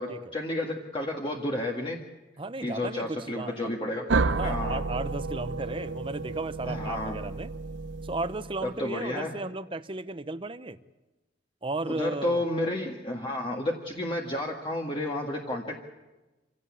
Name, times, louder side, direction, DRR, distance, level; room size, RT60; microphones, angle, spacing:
voice 1, 0.0-2.0 2.6-4.1 4.4-4.8 6.6-7.2 8.6-9.3 11.9-15.8, left 1 dB, 25° left, 0 dB, 1.8 m, -31 dB
voice 2, 2.4-3.7 4.3-7.5 8.0-10.8 11.6-12.4, right 2 dB, 25° right, 13 dB, 0.8 m, -35 dB
sound 1, 4.1-8.8, right 3 dB, 75° right, 0.8 m, -31 dB
26.5 x 17.0 x 8.6 m, 1.1 s
head